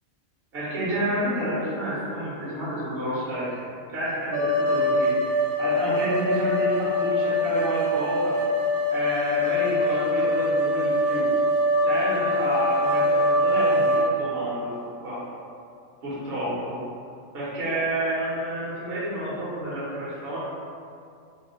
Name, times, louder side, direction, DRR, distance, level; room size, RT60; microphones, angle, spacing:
voice 1, 0.5-3.6 3.9-5.3 5.6-8.4 8.9-11.3 11.8-14.7 15.0-15.2 16.0-16.8 17.3-20.4, right 1 dB, 50° right, -9 dB, 0.9 m, -29 dB
sound 1, 4.3-14.1, left 1 dB, 80° right, 0.4 m, -23 dB
3.3 x 2.2 x 2.8 m, 2.4 s
omnidirectional pair, 1.5 m